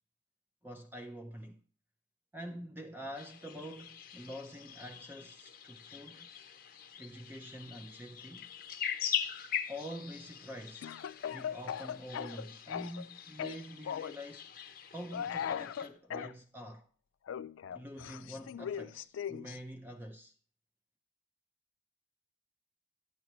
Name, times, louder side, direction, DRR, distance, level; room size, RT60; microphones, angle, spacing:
voice 1, 0.6-1.6 2.3-6.3 7.0-8.5 9.7-14.5 14.9-16.9 17.7-20.3, equal, 10° right, 0.5 m, -46 dB
sound 1, 3.2-15.9, left 9 dB, 45° left, 0.9 m, -42 dB
Speech / Cough, 10.8-13.1 13.4-14.2 15.1-16.3 17.3-19.6, left 8 dB, 85° left, 0.3 m, -39 dB
10.0 x 9.4 x 3.0 m
head